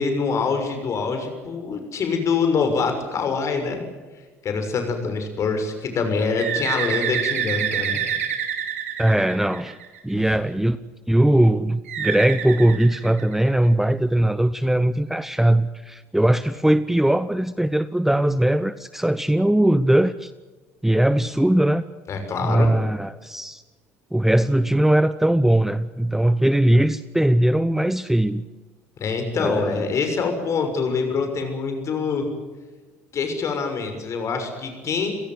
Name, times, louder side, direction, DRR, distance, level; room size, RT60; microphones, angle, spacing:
voice 1, 0.0-3.8 4.4-8.0 10.1-10.2 22.1-22.7 29.0-32.3 33.1-35.1, left 5 dB, 40° left, 6 dB, 6.4 m, -25 dB
Bird, 6.4-10.1 11.9-13.7, right 8 dB, 75° right, 2.2 m, -27 dB
voice 2, 9.0-9.8 10.0-10.8 11.1-20.3 20.8-21.8 22.4-23.6 24.1-28.4 29.4-29.9, right 1 dB, 5° right, 15 dB, 0.8 m, -20 dB
29.5 x 17.0 x 8.0 m, 1.3 s
figure-of-eight pair, 60°, 7 cm